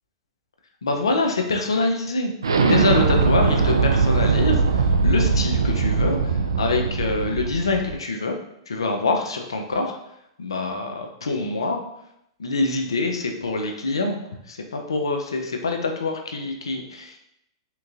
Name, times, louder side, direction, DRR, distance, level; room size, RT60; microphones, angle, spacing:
voice 1, 0.8-2.3 2.6-8.4 8.7-10.0 10.4-11.8 12.4-14.1 14.5-17.2, left 3 dB, 85° left, 3 dB, 0.4 m, -25 dB
Explosion, 2.4-7.9, right 4 dB, 90° right, 0.3 m, -20 dB
3.6 x 2.9 x 2.4 m, 0.77 s
hypercardioid pair, 110°, 3 cm